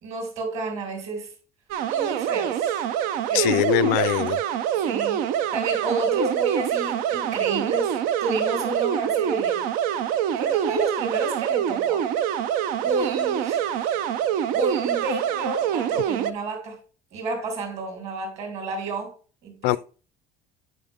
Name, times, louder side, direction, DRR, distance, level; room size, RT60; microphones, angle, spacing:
voice 1, 0.0-1.3 1.8-2.8 3.3-3.8 4.8-7.9 8.2-9.6 10.4-12.0 12.8-14.0 14.5-16.8 17.1-19.1 19.4-19.8, right 3 dB, 45° right, 3.5 m, -30 dB
sound 1, 1.7-16.3, right 9 dB, 70° right, 0.6 m, -25 dB
voice 2, 3.3-4.4 19.6-19.8, left 19 dB, 80° left, 0.5 m, -22 dB
9.4 x 5.5 x 3.5 m
cardioid pair, 140°, 15 cm